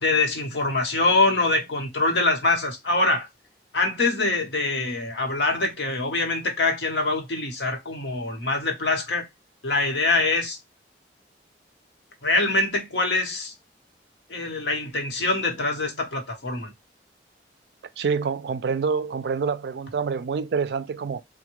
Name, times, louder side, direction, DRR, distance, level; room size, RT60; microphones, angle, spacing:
voice 1, 0.0-3.3 3.7-9.2 9.6-10.6 12.2-13.5 14.3-16.7, left 2 dB, 75° left, 1.0 m, -24 dB
voice 2, 18.0-21.2, right 5 dB, 65° right, 0.3 m, -26 dB
3.4 x 2.1 x 3.0 m
head